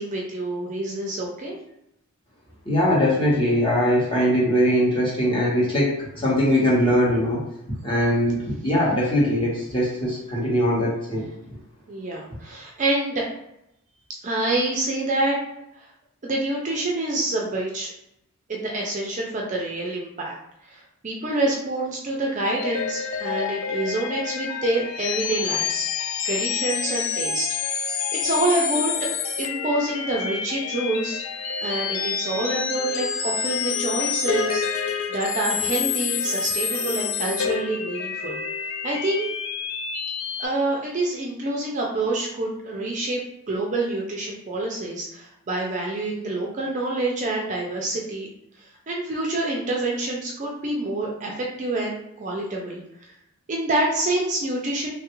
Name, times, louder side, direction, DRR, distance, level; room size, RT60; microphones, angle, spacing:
voice 1, 0.0-1.6 8.0-8.1 11.9-13.3 14.2-15.4 16.2-17.9 18.5-20.3 20.7-27.5 27.8-27.9 28.2-29.1 29.4-31.2 31.6-34.6 35.1-38.4 38.8-39.3 40.4-43.2 43.5-48.3 48.9-52.8 53.5-54.9, right 2 dB, 35° right, -1 dB, 0.4 m, -27 dB
voice 2, 2.7-6.0 6.2-7.4 7.8-11.3, equal, 20° left, -6 dB, 0.9 m, -21 dB
sound 1, 22.6-40.5, left 7 dB, 60° left, 0.4 m, -28 dB
3.2 x 2.4 x 2.9 m, 0.82 s
head